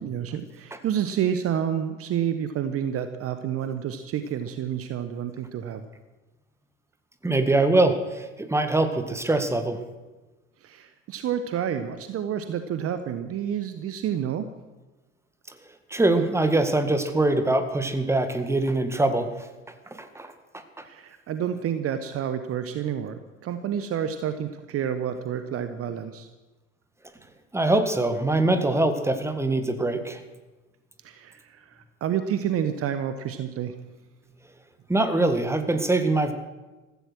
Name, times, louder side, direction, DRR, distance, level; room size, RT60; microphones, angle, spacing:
voice 1, 0.0-5.9 10.6-14.5 20.8-26.3 31.0-33.8, right 9 dB, 35° right, 10 dB, 1.1 m, -29 dB
voice 2, 7.2-9.8 15.9-19.5 19.9-20.6 27.5-30.2 34.9-36.3, right 2 dB, 5° right, 9 dB, 1.8 m, -23 dB
15.5 x 15.0 x 6.2 m, 1.2 s
figure-of-eight pair, 70°, 38 cm